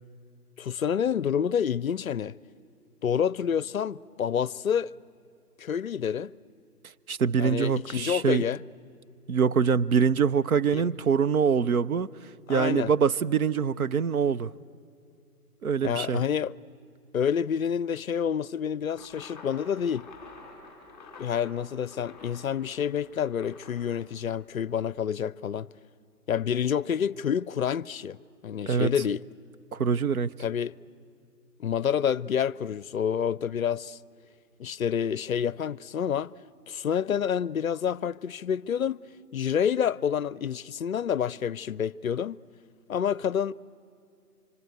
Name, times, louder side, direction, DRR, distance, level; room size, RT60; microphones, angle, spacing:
voice 1, 0.6-2.4 3.0-4.9 5.6-6.3 7.4-8.6 10.7-10.9 12.5-12.9 15.8-16.5 17.1-20.1 21.2-25.7 26.3-28.2 28.4-29.2 30.4-30.8 31.6-34.0 34.6-36.3 36.7-42.4 42.9-43.5, left 8 dB, 60° left, 0.5 m, -28 dB
voice 2, 7.1-8.4 9.3-12.1 12.5-14.5 15.6-16.2 28.7-28.9 29.7-30.3, right 6 dB, 65° right, 0.7 m, -24 dB
sound 1, 18.9-24.8, left 3 dB, ahead, 4.9 m, -49 dB
25.5 x 25.5 x 8.0 m
hypercardioid pair, 160°, 47 cm